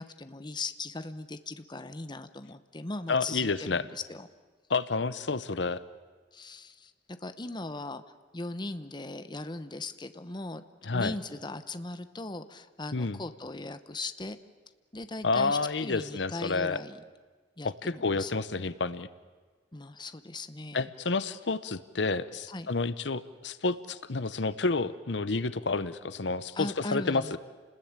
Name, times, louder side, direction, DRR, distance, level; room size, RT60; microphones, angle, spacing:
voice 1, 0.0-4.3 6.3-8.0 8.3-14.4 14.9-17.0 17.6-18.3 19.7-20.9 22.5-22.7 26.5-27.4, left 2 dB, 25° left, 11 dB, 1.0 m, -39 dB
voice 2, 3.1-3.8 4.7-5.8 10.8-11.2 12.9-13.2 15.2-16.8 17.6-19.1 20.7-27.4, left 3 dB, 75° left, 15 dB, 0.9 m, -30 dB
29.5 x 20.0 x 8.9 m, 1.4 s
head